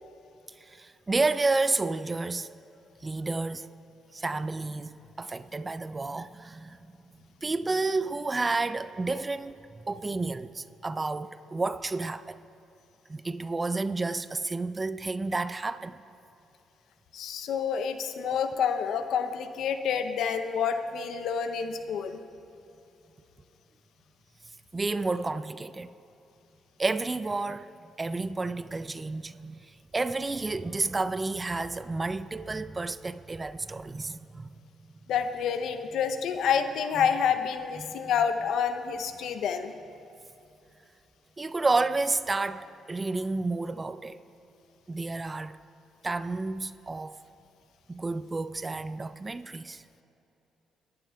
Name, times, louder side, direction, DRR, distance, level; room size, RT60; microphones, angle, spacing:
voice 1, 0.6-2.5 3.0-3.7 4.1-6.8 7.4-12.4 13.1-16.0 24.7-25.9 26.8-27.7 28.0-34.6 37.0-37.1 37.8-37.9 41.4-44.2 44.9-45.6 46.0-47.2 47.9-49.8, right 3 dB, 30° right, 0.4 m, -31 dB
voice 2, 17.1-22.2 35.1-39.7, left 7 dB, 75° left, 0.6 m, -28 dB
23.5 x 11.5 x 2.3 m
supercardioid pair, 60°, 0 cm